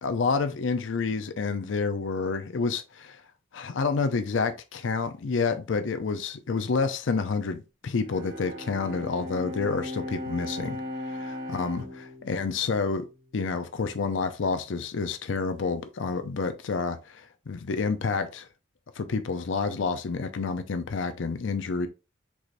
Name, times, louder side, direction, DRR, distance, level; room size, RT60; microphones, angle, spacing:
voice 1, 0.0-3.2 3.5-13.0 13.3-18.5 19.0-21.9, left 4 dB, 80° left, 0.5 m, -29 dB
Bowed string instrument, 8.0-13.5, left 1 dB, 75° right, 2.2 m, -37 dB
4.8 x 4.0 x 2.5 m
head